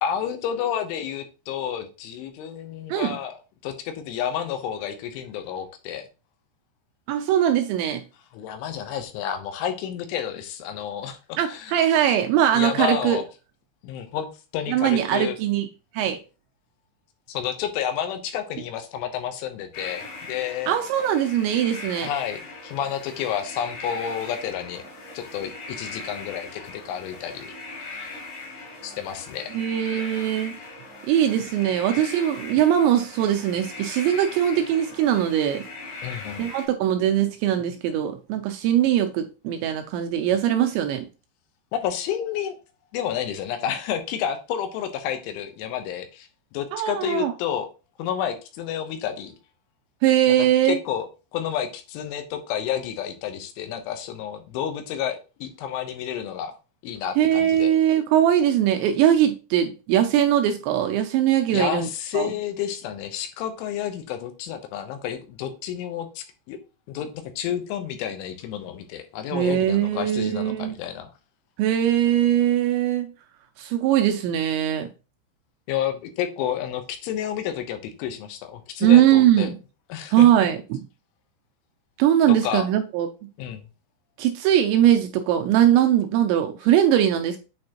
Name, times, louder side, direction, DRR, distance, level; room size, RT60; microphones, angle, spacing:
voice 1, 0.0-3.3 3.6-6.0 8.3-11.8 12.5-13.3 13.8-15.4 17.3-20.8 22.0-24.8 25.1-27.6 28.8-29.6 36.0-36.5 41.7-42.6 42.9-47.7 48.0-49.4 50.6-51.1 51.3-56.5 56.8-57.7 61.5-66.6 66.9-67.1 67.4-71.1 75.7-79.5 79.9-80.3 82.3-82.7 83.4-83.6, left 9 dB, 80° left, 3.3 m, -30 dB
voice 2, 7.1-8.0 11.4-13.2 14.7-15.7 15.9-16.2 20.7-22.1 29.5-30.5 31.1-35.6 36.4-41.1 46.7-47.3 50.0-50.8 57.2-61.9 62.1-62.3 69.3-70.8 71.6-73.1 73.6-74.9 78.8-79.6 80.1-80.8 82.0-83.1 84.2-87.4, right 11 dB, 80° right, 2.7 m, -21 dB
sound 1, 19.7-36.7, left 3 dB, 65° left, 4.7 m, -39 dB
8.6 x 4.3 x 2.9 m
omnidirectional pair, 5.6 m